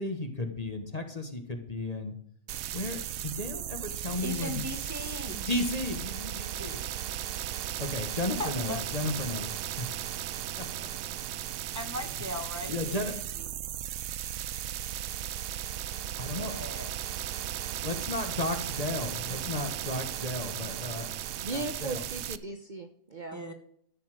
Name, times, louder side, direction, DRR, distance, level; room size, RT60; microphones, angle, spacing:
voice 1, 0.0-2.1 2.7-4.6 5.5-6.8 7.8-9.5 9.8-9.9 10.8-10.9 12.7-13.1 16.2-16.5 17.8-21.1 21.5-22.0, left 2 dB, 30° left, 5 dB, 1.6 m, -34 dB
sound 1, 2.5-22.4, right 11 dB, 85° right, 1.0 m, -36 dB
voice 2, 4.1-5.5 8.4-8.8 11.7-13.5 16.3-16.9 23.3-23.5, left 1 dB, 15° right, 5 dB, 1.3 m, -38 dB
voice 3, 21.4-23.4, right 2 dB, 40° right, 5 dB, 1.1 m, -37 dB
13.5 x 5.8 x 7.7 m, 0.66 s
omnidirectional pair, 1.4 m